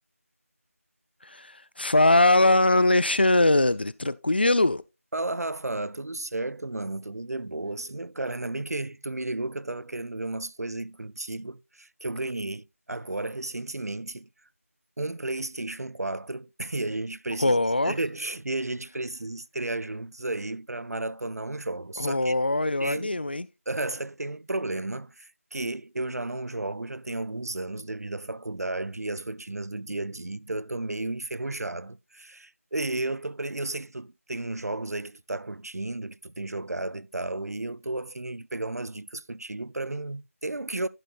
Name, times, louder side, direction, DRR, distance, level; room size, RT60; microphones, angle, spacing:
voice 1, 1.2-4.8 17.4-17.9 22.0-23.5, left 2 dB, 40° left, 0.4 m, -22 dB
voice 2, 5.1-14.3 15.0-22.4 22.8-23.2 23.7-40.9, right 2 dB, 85° right, 0.5 m, -33 dB
11.0 x 8.1 x 2.5 m
figure-of-eight pair, 170°, 8 cm